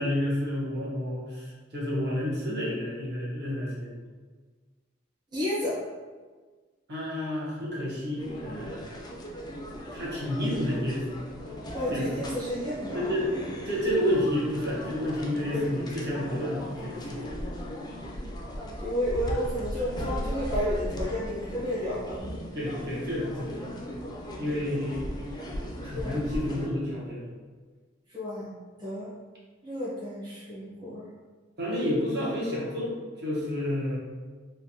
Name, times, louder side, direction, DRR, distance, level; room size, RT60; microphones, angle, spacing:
voice 1, 0.0-4.0 6.9-9.0 9.9-11.1 11.9-12.1 12.9-13.3 13.7-17.3 19.3-19.4 22.5-23.6 24.4-25.0 25.8-27.3 31.6-34.0, left 1 dB, 55° right, -6 dB, 1.0 m, -30 dB
voice 2, 5.3-5.8 11.7-13.0 18.8-22.2 25.9-26.2 28.1-29.1 29.6-31.1, equal, 20° right, -9 dB, 0.8 m, -32 dB
sound 1, 8.2-26.7, equal, 20° left, 0.3 m, -36 dB
3.2 x 2.2 x 2.7 m, 1.4 s
head